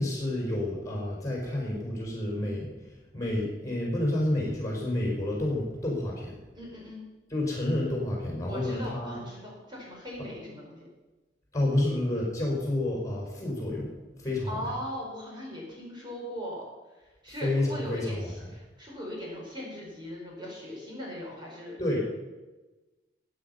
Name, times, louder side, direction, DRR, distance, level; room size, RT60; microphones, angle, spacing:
voice 1, 0.0-2.7 3.1-6.4 7.3-9.2 11.5-14.6 17.4-18.2 21.8-22.0, left 1 dB, 20° left, -3 dB, 5.3 m, -29 dB
voice 2, 6.5-7.0 8.5-10.8 14.5-16.6 17.0-22.0, equal, 25° right, -3 dB, 4.5 m, -39 dB
17.5 x 9.5 x 5.7 m, 1.2 s
head